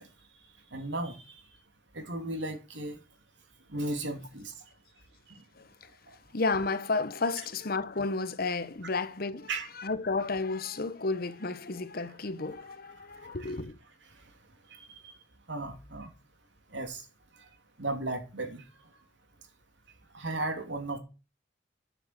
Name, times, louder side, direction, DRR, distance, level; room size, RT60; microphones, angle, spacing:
voice 1, 0.7-1.2 1.9-3.0 3.7-4.5 9.5-9.7 15.5-16.1 16.7-17.0 17.8-18.6 20.1-21.0, right 2 dB, 75° right, 3.0 m, -34 dB
voice 2, 6.3-9.5 9.8-13.8, left 3 dB, 55° left, 1.0 m, -32 dB
10.0 x 7.4 x 8.2 m
head